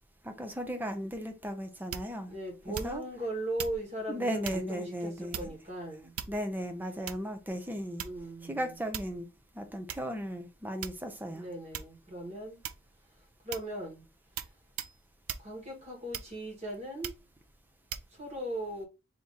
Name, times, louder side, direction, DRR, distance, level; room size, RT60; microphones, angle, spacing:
voice 1, 0.2-2.3 2.8-3.0 4.1-5.5 6.3-8.1 8.4-9.3 9.5-11.5, equal, 10° right, 0.6 m, -36 dB
sound 1, 1.9-2.3 2.7-3.2 3.6-3.8 4.4-4.7 5.3-5.7 6.2-6.6 7.1-7.4 8.0-8.4 8.9-9.2 9.9-10.0 10.8-11.2 11.7-12.0 12.6-13.0 13.5-13.8 14.4-14.5 14.8-15.0 15.3-15.5 16.1-16.5 17.0-17.3 17.9-18.1, right 9 dB, 75° right, 0.4 m, -39 dB
voice 2, 2.3-6.1 7.8-8.7 11.3-12.6 13.4-14.0 15.4-17.2 18.1-18.9, right 1 dB, 30° right, 1.6 m, -38 dB
3.6 x 3.0 x 3.9 m
head